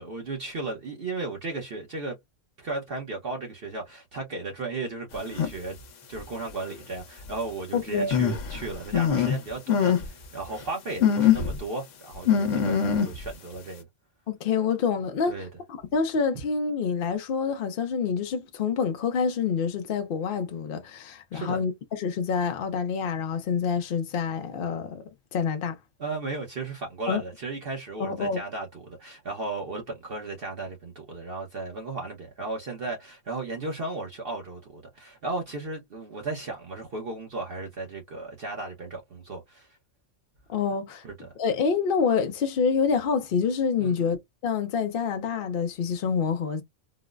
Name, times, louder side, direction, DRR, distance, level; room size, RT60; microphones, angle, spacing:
voice 1, 0.0-2.2 2.6-5.8 6.1-13.9 15.3-15.5 21.3-21.6 26.0-39.8 41.0-41.3 43.8-44.1, right 3 dB, 55° right, 0.9 m, -35 dB
sound 1, 5.3-5.5 6.2-6.3 8.1-9.4 9.7-10.1 10.4-10.5 11.0-11.6 12.2-13.3, left 8 dB, 75° left, 1.1 m, -23 dB
voice 2, 7.7-8.3 14.3-15.5 15.9-25.0 25.3-25.8 27.1-27.2 28.0-28.4 40.5-41.0 41.4-44.2 44.4-46.6, left 6 dB, 60° left, 0.6 m, -27 dB
3.8 x 2.0 x 2.3 m
omnidirectional pair, 1.3 m